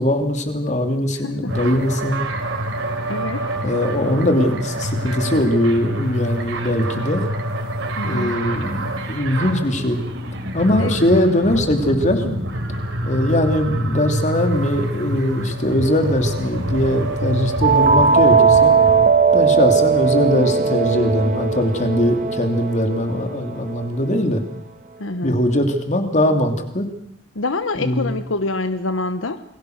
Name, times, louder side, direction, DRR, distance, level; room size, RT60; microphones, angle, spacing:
voice 1, 0.0-2.2 3.6-7.2 8.0-10.0 10.5-12.2 13.0-18.7 19.3-24.4 25.2-26.9 27.7-28.1, left 1 dB, 40° left, 6 dB, 3.1 m, -20 dB
voice 2, 1.1-1.5 3.1-3.5 8.0-8.4 10.8-11.0 12.2-12.4 16.4-17.0 25.0-25.4 27.3-29.4, left 2 dB, 85° left, 11 dB, 1.2 m, -26 dB
sound 1, 1.5-19.1, right 1 dB, 75° right, 4.3 m, -26 dB
sound 2, 17.6-24.1, right 5 dB, 40° right, 1.8 m, -18 dB
29.0 x 21.0 x 6.6 m, 0.77 s
head